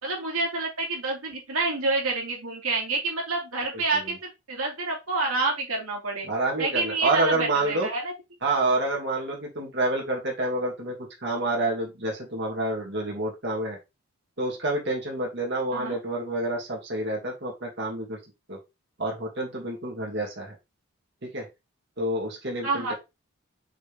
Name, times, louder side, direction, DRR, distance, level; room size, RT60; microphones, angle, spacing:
voice 1, 0.0-6.3 6.6-8.1 15.7-16.0 22.6-22.9, right 3 dB, 80° right, -1 dB, 2.7 m, -28 dB
voice 2, 6.2-7.9 8.4-10.9 11.2-13.8 14.4-18.2 18.5-18.6 19.0-20.5 21.2-21.4 22.0-22.9, right 2 dB, 50° right, -1 dB, 2.4 m, -28 dB
6.2 x 4.4 x 3.5 m, 0.23 s
head